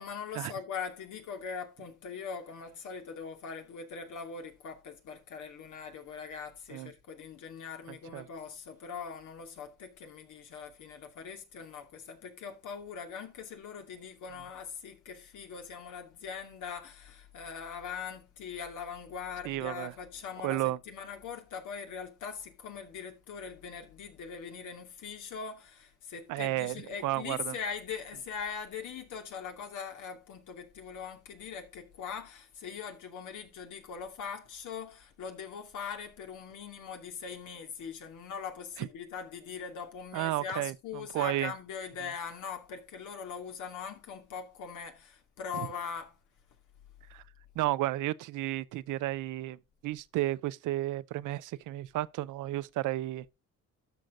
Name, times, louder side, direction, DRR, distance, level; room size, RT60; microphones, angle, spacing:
voice 1, 0.0-46.2, left 6 dB, 80° left, 2.6 m, -41 dB
voice 2, 7.9-8.3 19.4-19.9 20.4-20.8 26.3-26.8 27.0-27.5 38.8-38.9 40.1-41.5 45.5-45.7 47.1-47.2 47.6-53.3, right 16 dB, 90° right, 0.7 m, -33 dB
12.5 x 6.4 x 3.8 m
cardioid pair, 90°, 30 cm